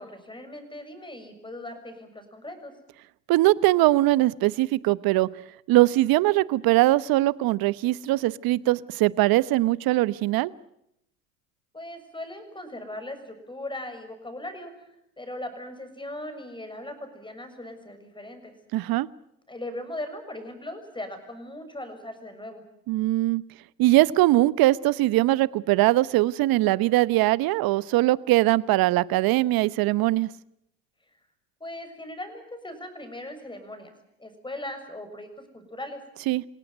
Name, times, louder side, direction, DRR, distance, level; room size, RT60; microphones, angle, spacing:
voice 1, 0.0-2.7 11.7-18.5 19.5-22.6 31.6-33.9 34.2-36.0, left 1 dB, 10° left, 8 dB, 6.9 m, -39 dB
voice 2, 3.3-5.3 5.7-10.5 18.7-19.1 22.9-23.4 23.8-30.3 36.3-36.4, right 17 dB, 50° right, 19 dB, 1.1 m, -21 dB
28.0 x 18.0 x 9.2 m, 0.79 s
hypercardioid pair, 85°, 46 cm